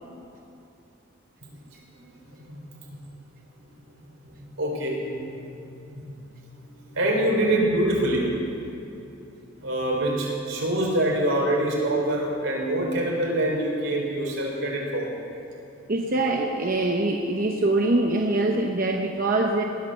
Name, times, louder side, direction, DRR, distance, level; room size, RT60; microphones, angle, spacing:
voice 1, 1.7-3.0 4.2-5.6 5.9-6.2 6.9-8.4 9.6-15.1, right 1 dB, 85° right, -2 dB, 3.9 m, -26 dB
voice 2, 15.9-19.6, right 2 dB, 45° right, 1 dB, 0.9 m, -23 dB
19.5 x 10.5 x 6.7 m, 2.8 s
head